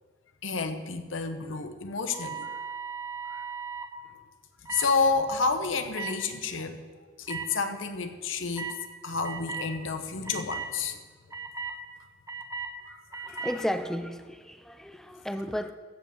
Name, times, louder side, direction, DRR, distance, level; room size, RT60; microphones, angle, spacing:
voice 1, 0.4-2.5 3.3-3.4 4.7-6.8 7.2-8.7 9.0-11.0 12.9-13.5, left 4 dB, 80° left, 8 dB, 1.0 m, -30 dB
sound 1, 2.1-3.9 4.7-4.9 5.9-6.1 7.3-7.4 8.6-8.8 9.2-9.7 10.2-10.7 11.3-11.7 12.3-12.7 13.1-13.5, right 5 dB, 15° right, 0.9 m, -36 dB
voice 2, 13.2-15.7, equal, ahead, 9 dB, 0.4 m, -33 dB
14.5 x 5.1 x 7.2 m, 1.5 s
head